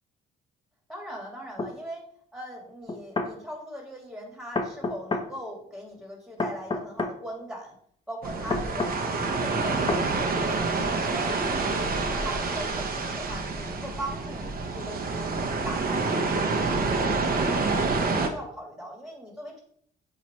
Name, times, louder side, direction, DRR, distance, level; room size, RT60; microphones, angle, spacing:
voice 1, 0.9-2.0 2.3-7.8 8.1-11.5 12.0-15.3 15.6-19.6, equal, ahead, -1 dB, 2.3 m, -40 dB
sound 1, 1.6-1.7 2.9-3.3 4.5-5.3 6.4-7.2 8.5-9.0 9.9-10.1, left 3 dB, 25° left, 0.8 m, -29 dB
sound 2, 8.2-18.3, right 3 dB, 50° right, 1.0 m, -27 dB
7.5 x 2.9 x 4.3 m, 0.62 s
cardioid pair, 90°, 20 cm